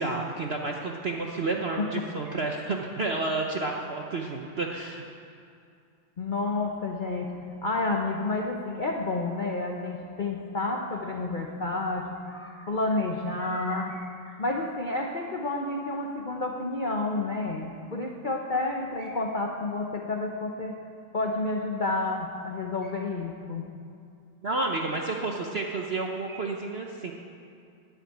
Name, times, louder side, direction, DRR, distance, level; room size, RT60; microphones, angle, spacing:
voice 1, 0.0-5.0 24.4-27.1, right 3 dB, 55° right, 1 dB, 0.6 m, -30 dB
voice 2, 1.8-2.1 6.2-20.8 21.1-23.7 26.3-26.4, left 2 dB, 80° left, 1 dB, 0.4 m, -30 dB
10.0 x 8.2 x 9.2 m, 2.4 s
omnidirectional pair, 2.1 m